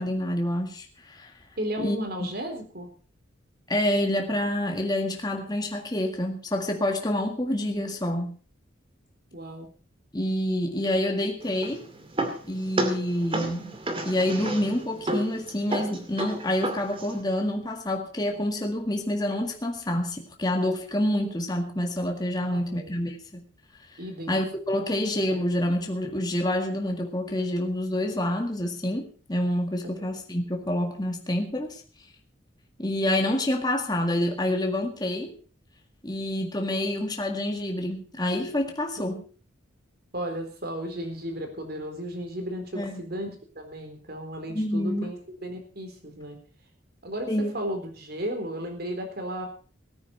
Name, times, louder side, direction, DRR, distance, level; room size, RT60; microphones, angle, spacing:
voice 1, 0.0-1.3 1.8-2.0 3.7-8.4 10.1-11.9 12.5-13.7 14.0-23.4 23.9-24.0 24.3-31.8 32.8-35.3 36.0-39.2 42.7-43.0 44.5-45.1 47.3-47.5, left 1 dB, 20° left, 3 dB, 1.9 m, -27 dB
voice 2, 1.6-2.9 9.3-9.7 22.4-22.9 24.0-24.4 30.0-30.1 39.0-39.2 40.1-46.4 47.0-49.5, equal, 50° right, 5 dB, 3.9 m, -34 dB
sound 1, 11.4-17.2, right 1 dB, 25° right, 2.3 m, -32 dB
18.0 x 9.5 x 5.5 m, 0.39 s
head